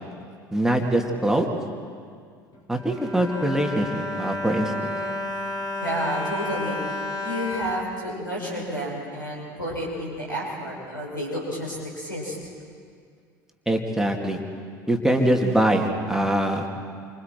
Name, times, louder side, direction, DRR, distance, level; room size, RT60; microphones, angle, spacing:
voice 1, 0.5-1.5 2.7-5.0 13.7-14.4 14.9-16.7, right 1 dB, 5° right, 2 dB, 2.4 m, -23 dB
Bowed string instrument, 2.5-8.8 9.5-9.6 9.8-10.0, left 1 dB, 35° left, 5.1 m, -32 dB
voice 2, 5.8-6.8 7.2-12.4 15.0-15.1, equal, 90° left, -4 dB, 6.4 m, -30 dB
29.0 x 26.0 x 4.6 m, 2.2 s
figure-of-eight pair, 70°, 10 cm